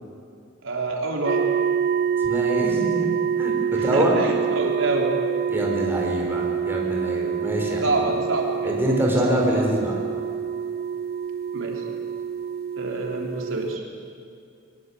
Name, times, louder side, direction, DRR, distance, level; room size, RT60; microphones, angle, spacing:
voice 1, 0.6-1.4 3.7-5.2 7.8-9.2 11.5-11.8 12.8-13.8, right 2 dB, 85° right, 1 dB, 3.6 m, -27 dB
sound 1, 1.3-13.8, right 7 dB, 55° right, 0.6 m, -26 dB
voice 2, 2.2-3.1 3.4-3.5 3.8-4.2 5.5-8.0 8.6-9.9, equal, 10° right, -1 dB, 4.8 m, -25 dB
21.5 x 21.5 x 8.4 m, 2.4 s
head